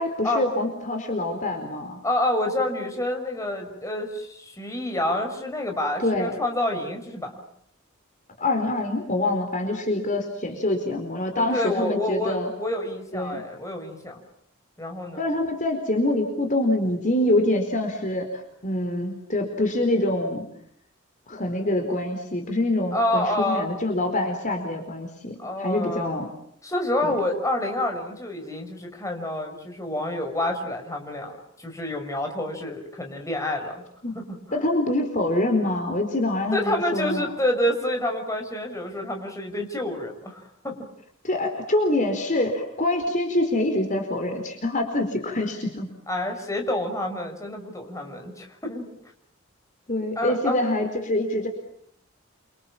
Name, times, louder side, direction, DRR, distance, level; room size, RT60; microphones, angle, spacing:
voice 1, 0.0-2.0 6.0-6.3 8.4-12.5 13.1-13.4 15.1-20.4 21.3-26.3 27.0-27.2 34.0-34.2 34.5-37.3 41.2-45.9 49.9-51.5, left 1 dB, 40° left, 4 dB, 4.5 m, -25 dB
voice 2, 2.0-7.3 11.4-14.2 14.8-15.2 22.9-23.7 25.4-26.1 26.6-33.8 34.1-34.6 36.5-40.8 46.1-48.9 50.2-50.8, left 1 dB, 15° left, 3 dB, 6.1 m, -28 dB
30.0 x 26.0 x 7.4 m, 0.71 s
head